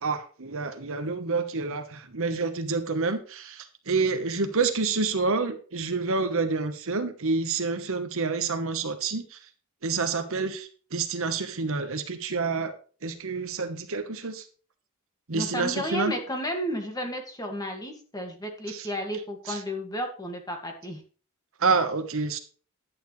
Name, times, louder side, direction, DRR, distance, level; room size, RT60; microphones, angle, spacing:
voice 1, 0.0-9.5 9.8-12.8 13.0-14.5 15.3-16.1 18.7-18.9 19.5-19.6 21.6-22.4, right 4 dB, 65° right, 9 dB, 1.1 m, -28 dB
voice 2, 15.3-21.0, equal, 15° left, 3 dB, 1.9 m, -32 dB
10.5 x 9.1 x 3.2 m, 0.39 s
head